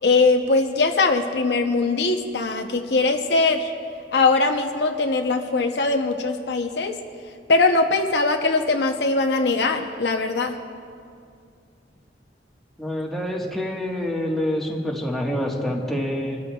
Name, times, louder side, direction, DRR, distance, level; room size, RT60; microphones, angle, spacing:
voice 1, 0.0-3.7 4.1-7.0 7.5-10.6, left 3 dB, 70° left, 5 dB, 0.7 m, -21 dB
voice 2, 12.8-16.4, left 1 dB, ahead, -2 dB, 1.4 m, -26 dB
25.5 x 13.0 x 2.3 m, 2.3 s
head